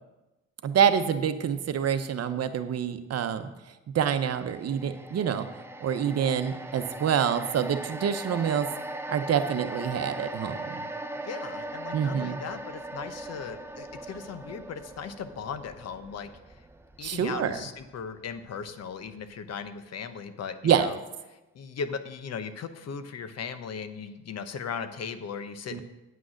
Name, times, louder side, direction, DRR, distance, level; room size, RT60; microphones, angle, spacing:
voice 1, 0.6-3.5 3.9-5.5 5.8-8.7 9.1-10.8 11.9-12.4 17.0-17.6 20.6-20.9 25.7-25.8, right 8 dB, 55° right, 9 dB, 0.9 m, -26 dB
sound 1, 4.4-18.7 19.1-19.2, right 2 dB, 10° right, 0.7 m, -40 dB
voice 2, 11.3-16.3 17.0-21.0 21.5-25.8, left 6 dB, 55° left, 10 dB, 0.9 m, -37 dB
9.3 x 6.2 x 6.4 m, 1.0 s
cardioid pair, 90°, 30 cm